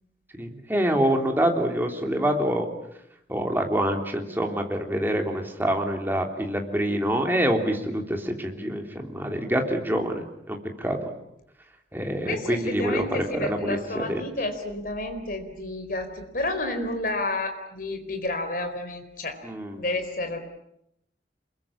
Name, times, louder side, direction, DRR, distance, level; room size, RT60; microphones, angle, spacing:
voice 1, 0.4-2.6 3.3-11.1 11.9-14.2 19.4-19.8, right 1 dB, 10° right, 3 dB, 3.3 m, -26 dB
voice 2, 12.3-19.4 19.8-20.4, left 2 dB, 50° left, 7 dB, 4.3 m, -30 dB
27.5 x 22.5 x 8.7 m, 0.79 s
head